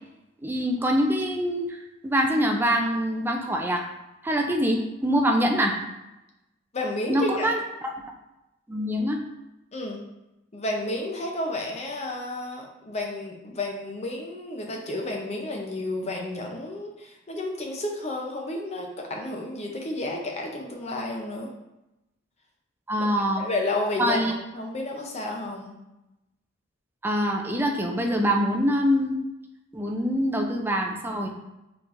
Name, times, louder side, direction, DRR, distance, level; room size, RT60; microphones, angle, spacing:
voice 1, 0.4-3.8 4.2-5.7 7.1-7.9 8.7-9.2 22.9-23.5 24.0-24.3 27.0-29.2 29.7-31.3, equal, 10° right, 2 dB, 0.4 m, -24 dB
voice 2, 6.7-7.5 9.7-10.0 10.5-21.5 23.0-23.1 23.4-24.2 24.5-25.7, left 2 dB, 30° left, 0 dB, 0.6 m, -31 dB
4.4 x 4.2 x 2.5 m, 0.94 s
head